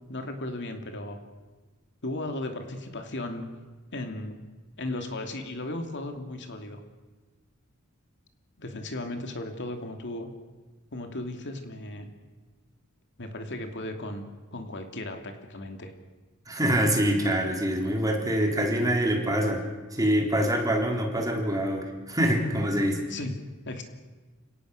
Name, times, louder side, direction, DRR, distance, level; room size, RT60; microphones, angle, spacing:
voice 1, 0.1-1.2 2.0-3.5 3.9-4.4 4.8-6.8 8.6-10.3 10.9-12.1 13.2-15.9 23.1-23.3 23.6-23.8, left 1 dB, 55° left, 5 dB, 2.8 m, -36 dB
voice 2, 16.5-19.6 19.9-23.0, equal, 15° right, 1 dB, 3.7 m, -25 dB
30.0 x 18.0 x 6.6 m, 1.3 s
head